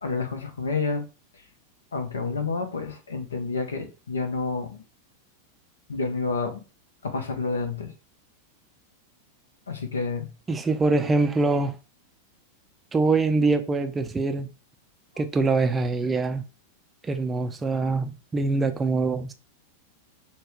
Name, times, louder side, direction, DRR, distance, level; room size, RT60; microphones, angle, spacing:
voice 1, 0.0-1.1 1.9-4.8 5.9-6.6 7.0-7.9 9.7-10.3, left 4 dB, 70° left, 0.7 m, -29 dB
voice 2, 10.5-11.8 12.9-14.5 15.2-16.4 17.0-19.3, right 3 dB, 15° right, 0.4 m, -24 dB
5.4 x 2.2 x 3.0 m
figure-of-eight pair, 90°, 0 cm